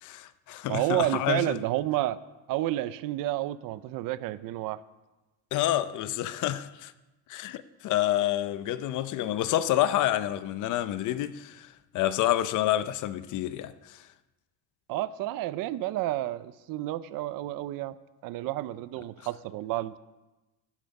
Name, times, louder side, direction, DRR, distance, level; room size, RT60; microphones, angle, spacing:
voice 1, 0.0-1.6 5.5-6.9 7.3-11.7 11.9-14.0, left 13 dB, 50° left, 0.7 m, -28 dB
voice 2, 0.7-2.2 2.5-4.8 14.9-17.9 18.2-20.0, right 15 dB, 60° right, 0.7 m, -30 dB
14.0 x 12.5 x 5.3 m
cardioid pair, 170°, 39 cm